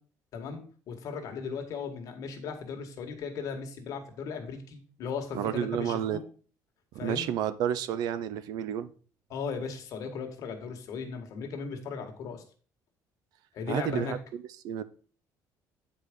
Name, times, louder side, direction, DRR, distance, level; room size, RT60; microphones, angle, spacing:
voice 1, 0.3-6.2 7.0-7.3 9.3-12.4 13.5-14.1, left 5 dB, 55° left, 1.7 m, -37 dB
voice 2, 5.3-6.2 6.9-8.9 13.7-14.8, right 10 dB, 75° right, 0.6 m, -31 dB
8.5 x 4.9 x 5.1 m
cardioid pair, 145°, 7 cm